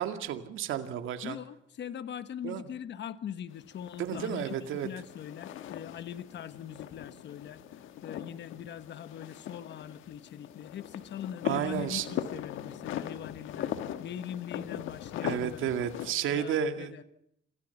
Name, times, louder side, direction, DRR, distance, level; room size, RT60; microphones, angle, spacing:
voice 1, 0.0-1.4 2.4-2.6 4.0-4.9 11.4-12.1 15.2-16.9, right 9 dB, 85° right, 7 dB, 2.1 m, -32 dB
voice 2, 1.2-4.5 4.8-7.6 8.0-13.7 14.0-15.7 16.3-17.0, left 9 dB, 65° left, 12 dB, 1.3 m, -41 dB
sound 1, 3.5-16.1, left 10 dB, 90° left, 1.5 m, -40 dB
27.0 x 16.0 x 7.1 m, 0.76 s
cardioid pair, 90°, 20 cm